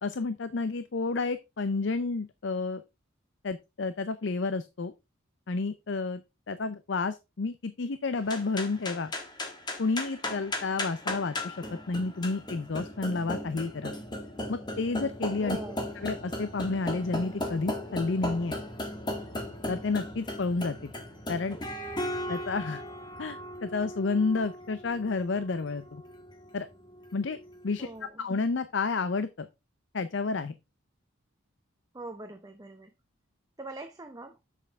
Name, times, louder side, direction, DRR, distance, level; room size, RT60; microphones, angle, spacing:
voice 1, 0.0-2.8 3.4-4.9 5.5-9.1 9.8-13.9 14.5-15.6 16.0-18.6 19.7-20.9 21.3-21.6 22.3-22.8 23.2-26.0 26.5-26.7 27.1-27.4 27.6-27.9 28.2-29.5 29.9-30.5, left 3 dB, 60° left, 0.5 m, -30 dB
sound 1, 8.2-27.7, left 1 dB, 20° left, 1.4 m, -37 dB
voice 2, 15.4-15.9 27.8-28.3 31.9-32.9 33.6-34.4, right 2 dB, 20° right, 0.7 m, -42 dB
7.4 x 6.7 x 3.5 m
head